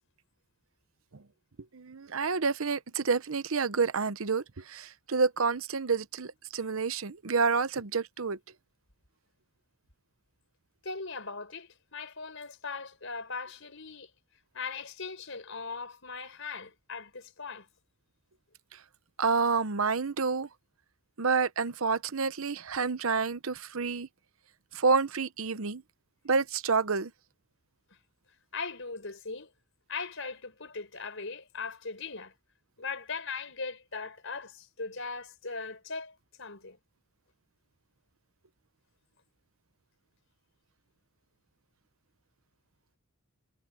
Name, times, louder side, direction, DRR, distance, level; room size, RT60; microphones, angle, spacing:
voice 1, 1.7-8.4 19.2-20.5 21.2-24.1 24.7-25.8 26.2-27.1, right 4 dB, 75° right, 0.9 m, -29 dB
voice 2, 10.8-14.1 14.5-17.7 28.5-29.5 29.9-32.3 32.8-36.8, left 4 dB, 65° left, 5.3 m, -39 dB
head